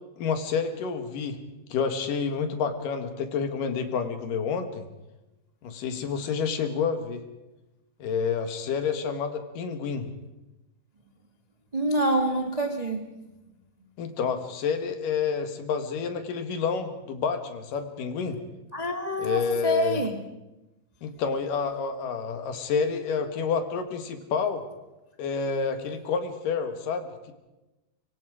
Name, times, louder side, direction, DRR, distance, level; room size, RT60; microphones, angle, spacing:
voice 1, 0.2-1.4 1.7-4.9 5.6-7.2 8.0-10.1 14.0-18.4 19.2-20.0 21.0-24.7 25.2-27.3, left 5 dB, 75° left, 7 dB, 3.2 m, -29 dB
voice 2, 11.7-13.0 18.7-20.2, equal, 50° right, 3 dB, 0.4 m, -26 dB
24.5 x 24.0 x 5.0 m, 1.0 s
omnidirectional pair, 3.9 m